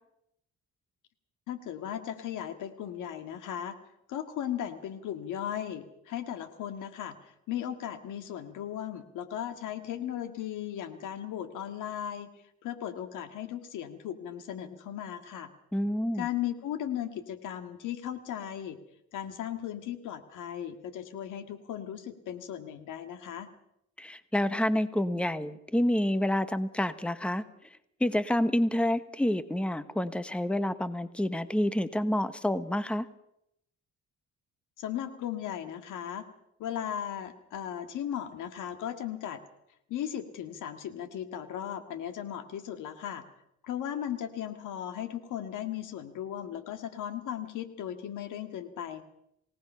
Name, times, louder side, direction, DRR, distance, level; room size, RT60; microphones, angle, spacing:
voice 1, 1.5-3.8 4.1-12.3 12.6-15.5 16.2-18.8 19.1-23.5 34.8-36.3 36.6-39.4 39.9-43.2 43.6-49.0, left 10 dB, 85° left, 8 dB, 2.0 m, -37 dB
voice 2, 15.7-16.3 24.0-27.4 28.0-33.1, left 1 dB, 5° left, 12 dB, 1.1 m, -28 dB
28.0 x 18.0 x 5.7 m, 0.77 s
cardioid pair, 90°, 30 cm